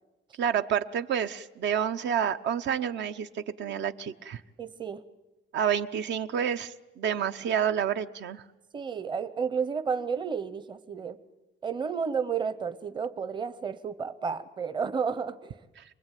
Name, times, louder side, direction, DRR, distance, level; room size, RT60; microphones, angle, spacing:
voice 1, 0.4-4.4 5.5-8.4, right 8 dB, 60° right, 10 dB, 0.9 m, -29 dB
voice 2, 4.6-5.0 8.7-11.2 11.6-15.6, right 6 dB, 20° right, 13 dB, 0.8 m, -32 dB
28.0 x 21.0 x 9.2 m, 1.0 s
cardioid pair, 175°, 20 cm